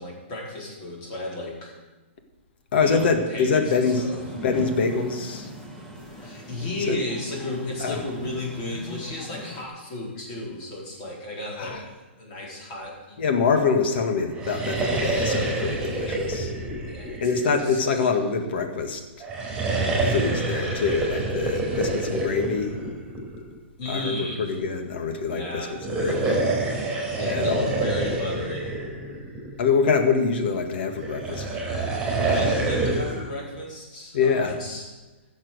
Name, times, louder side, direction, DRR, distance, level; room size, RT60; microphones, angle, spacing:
voice 1, 0.0-1.8 2.8-4.2 6.2-13.2 16.8-18.1 23.8-24.6 25.3-25.8 27.1-28.8 32.1-34.9, left 2 dB, 35° left, -2 dB, 4.4 m, -34 dB
voice 2, 2.7-4.0 4.4-5.5 6.8-7.0 7.8-8.0 11.6-11.8 13.2-16.5 17.2-19.3 20.1-22.7 23.9-26.5 27.3-27.7 29.6-31.5 34.1-34.6, left 5 dB, 55° left, 6 dB, 1.9 m, -25 dB
sound 1, 3.8-9.6, equal, 5° left, 1.8 m, -40 dB
sound 2, 14.3-17.9 19.2-23.5 25.7-29.7 31.0-33.3, right 2 dB, 10° right, 4.3 m, -27 dB
15.0 x 7.4 x 6.5 m, 1.2 s
hypercardioid pair, 160°, 7 cm